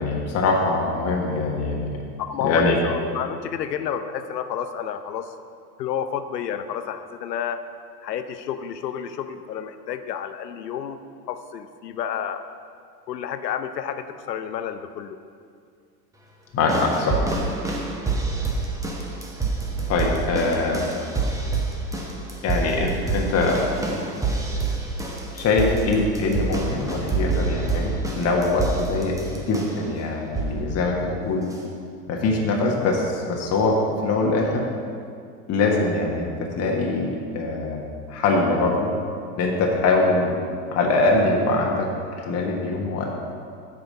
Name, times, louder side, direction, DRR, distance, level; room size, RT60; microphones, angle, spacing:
voice 1, 0.0-1.9 2.4-2.8 16.5-17.2 19.9-20.9 22.4-23.6 23.9-24.0 25.3-31.5 32.1-34.6 35.5-37.8 38.1-38.9 39.3-40.3 40.7-41.9 42.2-43.1, left 3 dB, 30° left, -1 dB, 1.3 m, -23 dB
voice 2, 2.2-5.3 5.8-7.6 8.0-11.0 11.3-12.4 13.1-15.2, left 8 dB, 75° left, 10 dB, 0.8 m, -30 dB
sound 1, 16.7-29.9 30.3-30.7 31.5-31.6, right 3 dB, 5° right, 1.0 m, -27 dB
8.2 x 5.1 x 6.4 m, 2.3 s
figure-of-eight pair, 90°, 50 cm